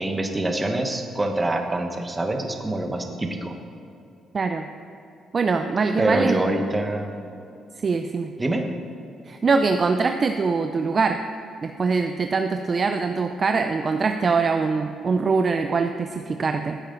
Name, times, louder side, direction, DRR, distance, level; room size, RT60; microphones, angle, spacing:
voice 1, 0.0-3.5 6.0-7.1 8.4-8.7, right 1 dB, 20° right, 4 dB, 1.3 m, -25 dB
voice 2, 4.3-4.7 5.3-6.3 7.8-8.3 9.2-11.2 11.6-16.8, right 4 dB, 40° right, 6 dB, 0.5 m, -23 dB
15.0 x 8.6 x 3.9 m, 2.7 s
cardioid pair, 90°, 0 cm